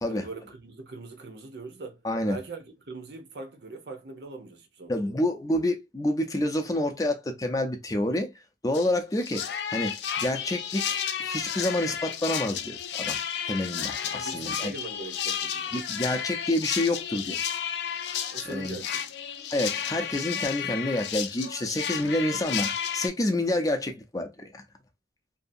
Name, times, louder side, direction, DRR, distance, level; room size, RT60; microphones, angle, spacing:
voice 1, 0.1-5.2 14.1-15.7 18.3-19.0, right 3 dB, 70° right, 0.7 m, -41 dB
voice 2, 2.0-2.4 4.9-8.3 8.6-13.2 13.5-14.7 15.7-17.4 18.4-18.8 19.5-24.6, left 1 dB, 20° left, 0.4 m, -28 dB
sound 1, 8.7-8.9 9.2-23.1, left 8 dB, 80° left, 0.4 m, -32 dB
2.7 x 2.4 x 2.6 m
head